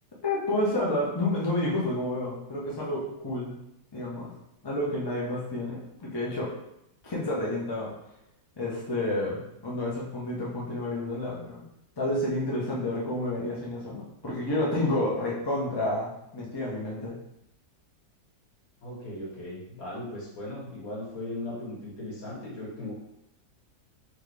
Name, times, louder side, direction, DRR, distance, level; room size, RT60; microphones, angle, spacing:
voice 1, 0.2-3.6 3.9-4.3 4.6-6.5 7.0-7.9 8.6-11.6 12.0-17.2, left 1 dB, 35° left, -5 dB, 0.3 m, -30 dB
voice 2, 18.8-22.9, left 1 dB, 55° left, -6 dB, 1.8 m, -38 dB
3.8 x 3.1 x 3.3 m, 0.83 s
omnidirectional pair, 2.0 m